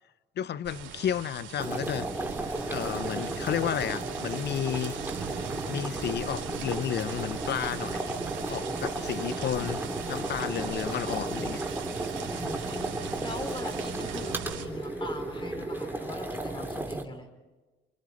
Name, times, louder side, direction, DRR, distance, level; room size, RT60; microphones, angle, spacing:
voice 1, 0.4-2.2 2.7-5.0 5.7-8.1 8.5-9.8 10.1-11.7, left 10 dB, 60° left, 0.6 m, -32 dB
sound 1, 0.6-14.7, right 8 dB, 75° right, 3.0 m, -40 dB
sound 2, 1.6-17.0, right 2 dB, 10° right, 2.8 m, -34 dB
sound 3, 2.4-16.8, left 2 dB, 75° left, 7.3 m, -50 dB
voice 2, 12.3-17.3, left 2 dB, 25° left, 4.5 m, -41 dB
29.0 x 28.5 x 4.1 m
cardioid pair, 90°, 20 cm